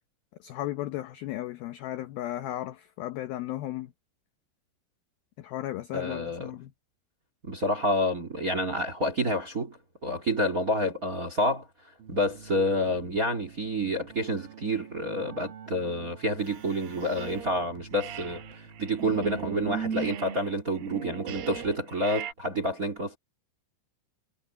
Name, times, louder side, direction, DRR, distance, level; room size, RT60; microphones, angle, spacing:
voice 1, 0.4-3.9 5.4-6.7, left 14 dB, 80° left, 2.1 m, -35 dB
voice 2, 5.9-6.5 7.4-11.7 12.1-23.2, equal, 30° right, 1.9 m, -29 dB
Keyboard (musical), 12.0-20.4, right 6 dB, 80° right, 4.8 m, -48 dB
sound 1, 16.5-17.7 17.9-22.3, right 7 dB, 60° right, 5.5 m, -37 dB
omnidirectional pair, 5.4 m